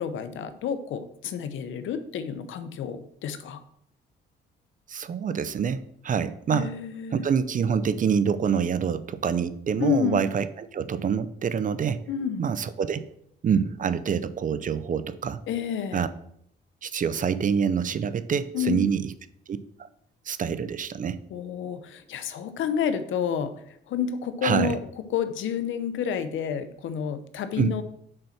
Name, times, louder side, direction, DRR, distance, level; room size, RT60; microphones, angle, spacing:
voice 1, 0.0-3.6 6.5-7.3 9.8-10.3 12.1-12.4 15.5-16.1 18.5-18.9 21.3-24.8 25.1-27.8, left 7 dB, 75° left, 11 dB, 0.8 m, -29 dB
voice 2, 4.9-6.7 7.1-12.0 12.4-13.0 13.4-15.4 15.9-16.1 16.8-19.1 19.5-19.9 20.3-21.2 24.4-24.7 27.6-27.8, right 7 dB, 40° right, 13 dB, 0.5 m, -26 dB
6.5 x 4.2 x 5.8 m, 0.70 s
cardioid pair, 90°, 20 cm